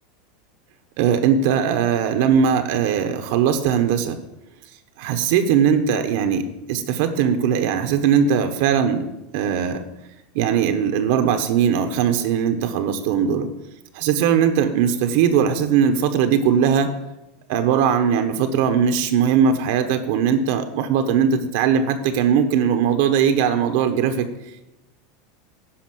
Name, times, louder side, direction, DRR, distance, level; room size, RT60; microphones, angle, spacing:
voice 1, 1.0-4.2 5.0-9.1 9.3-9.8 10.3-13.5 13.9-16.9 17.5-24.3, right 7 dB, 65° right, 8 dB, 1.1 m, -20 dB
10.5 x 5.9 x 7.7 m, 0.96 s
supercardioid pair, 145°, 0 cm